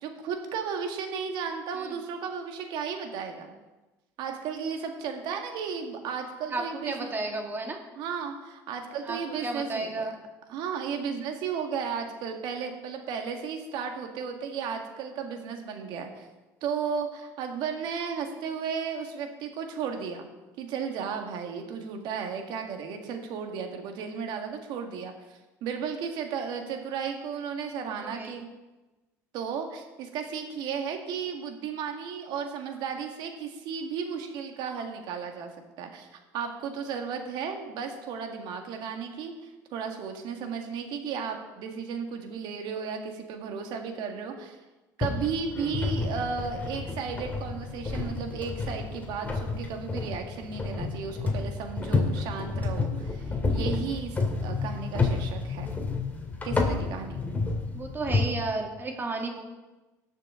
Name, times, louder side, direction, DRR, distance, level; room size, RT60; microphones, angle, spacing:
voice 1, 0.0-3.6 4.2-7.1 8.0-10.1 10.5-16.3 16.6-20.3 20.6-28.5 29.3-35.5 35.8-36.1 36.3-44.6 45.0-55.7 56.4-57.3, right 6 dB, 70° right, 4 dB, 1.8 m, -34 dB
voice 2, 6.5-7.8 9.0-10.1 27.8-28.4 57.7-59.4, right 3 dB, 25° right, 2 dB, 2.2 m, -33 dB
sound 1, 45.0-58.3, left 3 dB, 20° left, 2.2 m, -30 dB
18.0 x 6.7 x 3.8 m, 1.1 s
supercardioid pair, 95°, 8 cm